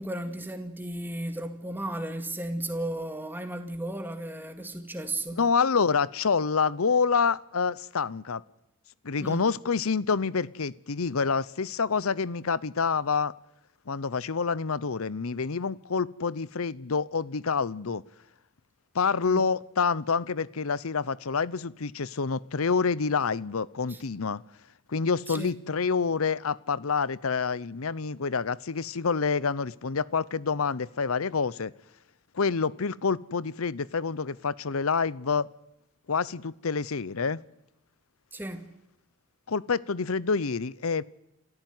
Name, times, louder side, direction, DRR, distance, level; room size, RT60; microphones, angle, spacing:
voice 1, 0.0-5.4 9.2-9.5 19.2-19.4 23.9-24.0 25.3-25.5 38.3-38.7, right 1 dB, 10° right, 2.1 m, -34 dB
voice 2, 5.4-8.4 9.0-13.3 13.9-18.0 18.9-24.4 24.9-31.7 32.3-35.5 36.1-37.4 39.5-41.0, left 5 dB, 85° left, 0.8 m, -27 dB
28.5 x 14.0 x 9.5 m
head